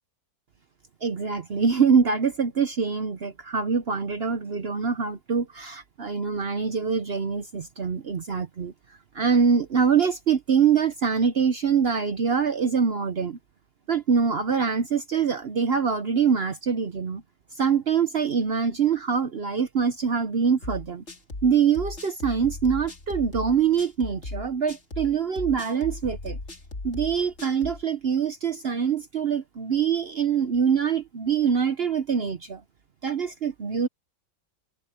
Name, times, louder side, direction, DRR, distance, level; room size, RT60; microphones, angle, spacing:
voice 1, 1.0-8.7 9.1-13.4 13.9-17.2 17.6-21.0 21.4-26.4 26.8-32.6 33.0-33.9, right 6 dB, 60° right, 0.6 m, -24 dB
sound 1, 20.6-27.8, left 2 dB, 35° left, 2.6 m, -37 dB
omnidirectional pair, 2.1 m